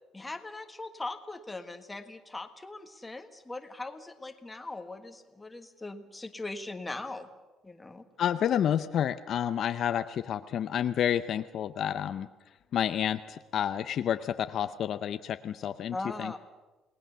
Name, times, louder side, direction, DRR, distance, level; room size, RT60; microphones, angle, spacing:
voice 1, 0.1-7.3 7.6-8.0 15.9-16.4, left 2 dB, 10° left, 7 dB, 1.5 m, -40 dB
voice 2, 8.2-12.3 12.7-16.4, left 9 dB, 45° left, 10 dB, 0.6 m, -30 dB
28.5 x 19.0 x 6.9 m, 1.2 s
cardioid pair, 155°, 0 cm